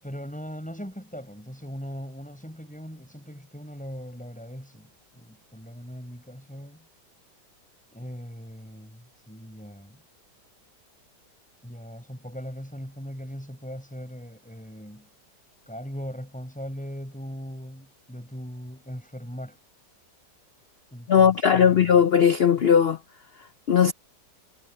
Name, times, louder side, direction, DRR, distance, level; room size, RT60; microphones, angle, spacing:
voice 1, 0.0-6.9 7.9-10.0 11.6-15.1 15.7-19.6 20.9-22.0, equal, 5° left, 7.1 m, -39 dB
voice 2, 21.1-23.0 23.7-23.9, left 7 dB, 85° left, 0.5 m, -18 dB
omnidirectional pair, 1.9 m